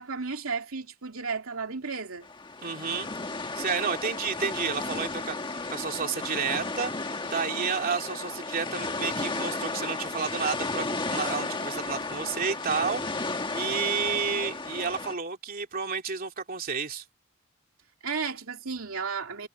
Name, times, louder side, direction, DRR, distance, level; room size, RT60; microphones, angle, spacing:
voice 1, 0.0-2.3 18.0-19.5, right 5 dB, 80° right, 2.6 m, -33 dB
sound 1, 2.2-15.1, left 3 dB, 25° left, 1.6 m, -33 dB
voice 2, 2.6-3.1 3.6-5.4 5.7-6.9 7.2-17.0, right 5 dB, 45° right, 2.9 m, -31 dB
head